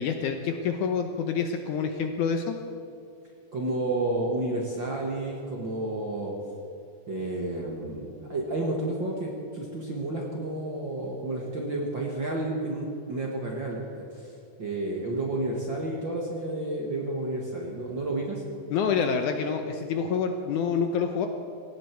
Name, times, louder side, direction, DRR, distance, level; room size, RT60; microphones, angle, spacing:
voice 1, 0.0-2.6 18.7-21.3, left 6 dB, 75° left, 6 dB, 2.0 m, -27 dB
voice 2, 3.5-6.3 7.1-14.1 14.6-18.4, right 2 dB, 45° right, -1 dB, 1.6 m, -31 dB
19.0 x 16.5 x 4.6 m, 2.5 s
omnidirectional pair, 4.2 m